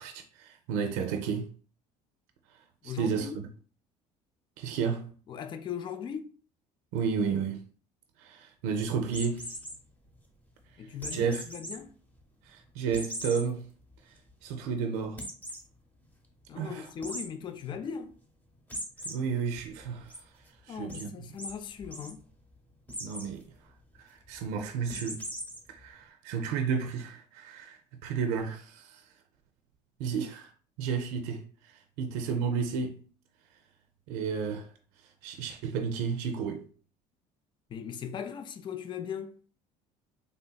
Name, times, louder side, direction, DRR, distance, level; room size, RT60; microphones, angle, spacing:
voice 1, 0.0-1.5 2.5-3.5 4.6-5.1 6.9-7.7 8.2-9.6 10.7-11.4 12.4-13.7 14.1-15.2 16.5-16.9 19.0-21.1 23.0-23.5 24.0-25.3 25.7-29.1 30.0-30.5 30.8-33.0 34.1-34.7 35.0-36.7, right 6 dB, 85° right, 0.4 m, -32 dB
voice 2, 2.8-3.4 5.3-6.3 10.8-11.9 16.5-18.2 20.7-22.3 37.7-39.4, left 7 dB, 30° left, 0.3 m, -38 dB
sound 1, 9.1-9.8 11.0-11.7 12.2-12.3 12.9-13.4 13.9-14.0 14.3-14.4 15.2-15.6 17.0-17.2 18.7-19.1 19.6-20.2 20.9-21.0 21.4-21.5 21.8-22.1 22.9-23.3 24.9-25.6, equal, 10° left, 0.8 m, -38 dB
3.3 x 2.7 x 2.2 m
supercardioid pair, 100°, 15 cm